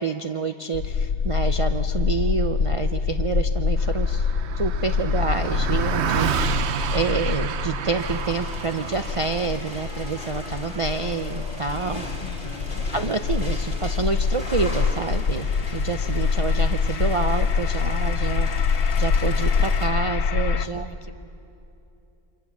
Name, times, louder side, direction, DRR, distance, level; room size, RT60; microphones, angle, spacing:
voice 1, 0.0-4.3 4.5-12.0 12.9-18.5 19.0-20.9, right 4 dB, 35° right, 7 dB, 0.6 m, -28 dB
sound 1, 0.7-20.7, left 5 dB, 70° left, 1.1 m, -25 dB
Car passing by, 3.8-13.4, right 8 dB, 70° right, 1.0 m, -31 dB
sound 2, 8.0-19.9, left 1 dB, 45° left, 2.9 m, -38 dB
voice 2, 12.2-12.9 20.7-21.2, left 2 dB, 30° left, 7 dB, 1.1 m, -43 dB
28.5 x 25.5 x 7.2 m, 2.8 s
omnidirectional pair, 1.2 m